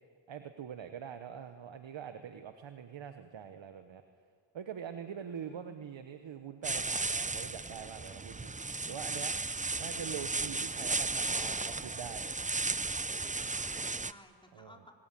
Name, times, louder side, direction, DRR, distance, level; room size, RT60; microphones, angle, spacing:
voice 1, 0.3-4.0 4.5-8.5 8.9-9.3 9.8-12.2 14.5-14.8, right 8 dB, 75° right, 8 dB, 1.2 m, -44 dB
voice 2, 5.1-5.8 13.5-14.9, left 1 dB, 10° left, 1 dB, 4.1 m, -58 dB
sound 1, 6.6-14.1, right 3 dB, 15° right, 0.7 m, -35 dB
24.5 x 22.0 x 9.1 m, 2.1 s
cardioid pair, 45°, 45 cm